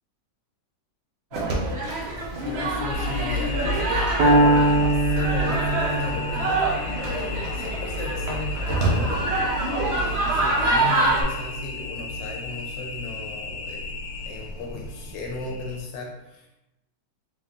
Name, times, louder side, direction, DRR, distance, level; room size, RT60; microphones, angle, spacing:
voice 1, 1.3-1.7 2.1-4.1 4.9-9.2 9.9-13.9 14.3-16.5, left 4 dB, 85° left, 1 dB, 1.3 m, -36 dB
sound 1, 1.3-11.2, right 2 dB, 60° right, 0.7 m, -26 dB
sound 2, 2.9-15.8, equal, 70° left, 0.9 m, -32 dB
Piano, 4.2-12.1, right 1 dB, 75° right, 1.3 m, -25 dB
4.1 x 3.7 x 2.3 m, 0.94 s
omnidirectional pair, 1.9 m